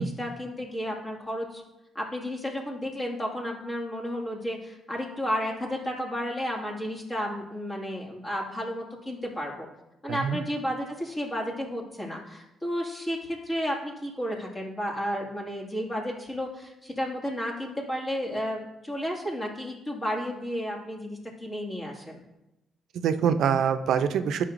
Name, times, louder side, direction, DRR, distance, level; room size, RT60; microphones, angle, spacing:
voice 1, 0.0-1.6 1.9-9.7 10.0-22.2, equal, 25° left, -2 dB, 2.1 m, -32 dB
voice 2, 22.9-24.5, right 7 dB, 75° right, 9 dB, 0.5 m, -25 dB
11.0 x 5.6 x 2.6 m, 0.94 s
cardioid pair, 90°, 0 cm